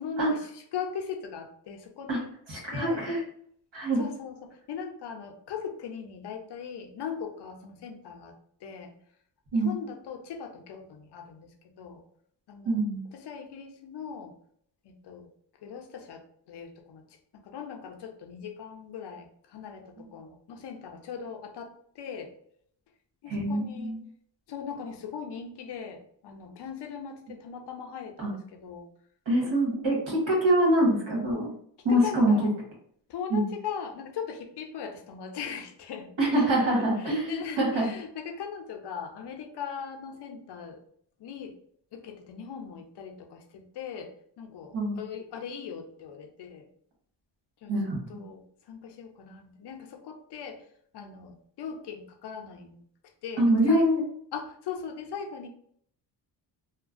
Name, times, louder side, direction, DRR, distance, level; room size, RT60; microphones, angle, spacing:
voice 1, 0.0-2.3 2.7-3.1 4.0-8.3 8.6-8.9 9.5-11.5 11.8-12.0 12.5-12.8 13.1-14.3 14.8-15.3 15.6-17.0 17.4-22.3 23.2-24.0 24.5-28.9 31.9-32.5 33.1-36.5 37.0-40.8 41.2-41.6 41.9-46.7 47.6-47.7 48.1-50.6 50.9-52.8 53.2-53.8 54.3-55.5, left 6 dB, 60° left, 4 dB, 0.6 m, -39 dB
voice 2, 2.5-3.2 3.7-4.0 9.5-9.7 12.6-13.0 23.3-24.0 28.2-28.3 29.2-31.5 31.8-32.3 33.3-33.5 36.2-37.8 44.7-45.0 47.7-48.0 53.4-54.0, right 1 dB, 80° right, -3 dB, 1.5 m, -24 dB
3.0 x 2.2 x 2.4 m, 0.63 s
wide cardioid pair, 135°, 45 cm